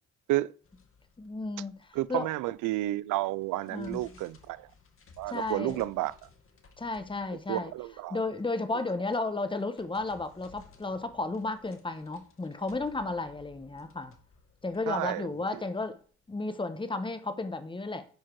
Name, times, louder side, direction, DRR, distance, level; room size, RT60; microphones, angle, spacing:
sound 1, 0.6-3.0 3.4-16.4, left 4 dB, 45° left, 2.1 m, -59 dB
voice 1, 1.2-2.3 3.7-4.0 5.3-5.8 6.8-7.7 8.1-14.2 14.6-16.0 16.3-18.0, left 3 dB, 15° left, 1.2 m, -33 dB
voice 2, 1.9-4.7 5.2-6.1 7.5-8.2 14.9-15.6, right 16 dB, 90° right, 0.5 m, -31 dB
10.5 x 4.7 x 4.7 m
cardioid pair, 90°, 30 cm